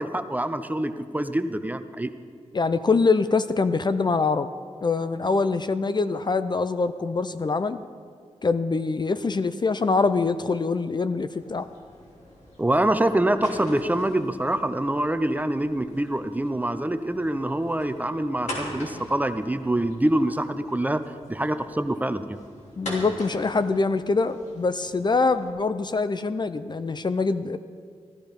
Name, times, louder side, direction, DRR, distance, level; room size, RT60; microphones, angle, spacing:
voice 1, 0.0-2.1 12.6-21.0 21.3-22.4, right 1 dB, 15° right, 10 dB, 0.6 m, -25 dB
voice 2, 2.5-4.5 4.8-7.8 8.4-11.7 22.8-27.6, left 4 dB, 40° left, 11 dB, 0.5 m, -24 dB
sound 1, 11.3-25.5, left 1 dB, 85° left, 3.1 m, -42 dB
15.0 x 12.5 x 5.3 m, 2.1 s
wide cardioid pair, 80°, 12 cm